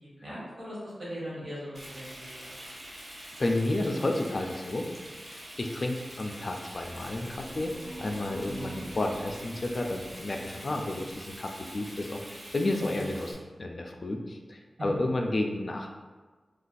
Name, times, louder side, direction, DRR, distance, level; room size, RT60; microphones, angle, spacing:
voice 1, 0.0-2.5 8.5-8.8 12.8-13.0, equal, 55° right, -7 dB, 1.3 m, -40 dB
Frying (food), 1.7-13.3, equal, 40° right, 0.9 m, -45 dB
voice 2, 3.4-4.9 5.6-7.7 8.0-15.9, left 2 dB, 45° left, 2 dB, 0.4 m, -31 dB
sound 1, 6.5-11.2, right 1 dB, 75° right, 1.0 m, -46 dB
2.5 x 2.3 x 3.9 m, 1.4 s
wide cardioid pair, 85°, 0 cm